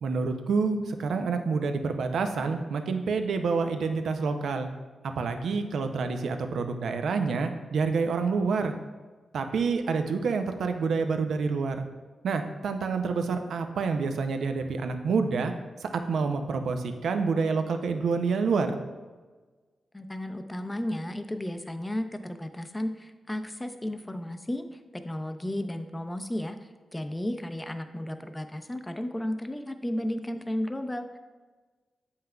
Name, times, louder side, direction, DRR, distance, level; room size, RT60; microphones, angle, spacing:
voice 1, 0.0-4.7 5.2-8.7 9.3-11.8 12.2-15.5 15.8-18.8, right 4 dB, 80° right, 7 dB, 0.5 m, -28 dB
voice 2, 19.9-31.2, left 1 dB, 15° left, 8 dB, 0.5 m, -34 dB
7.5 x 5.6 x 2.3 m, 1.3 s
cardioid pair, 55°, 0 cm